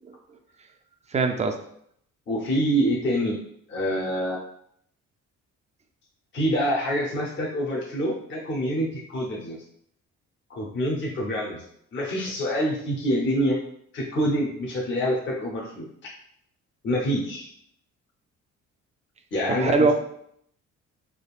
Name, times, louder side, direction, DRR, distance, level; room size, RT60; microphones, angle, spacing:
voice 1, 1.1-1.6 19.6-19.9, right 4 dB, 25° right, 6 dB, 0.3 m, -21 dB
voice 2, 2.3-3.4 3.7-4.4 6.3-9.6 10.5-11.6 11.9-13.6 13.9-15.9 16.8-17.5 19.3-19.9, equal, 40° left, -3 dB, 0.7 m, -26 dB
3.5 x 2.3 x 2.3 m, 0.69 s
cardioid pair, 90°, 30 cm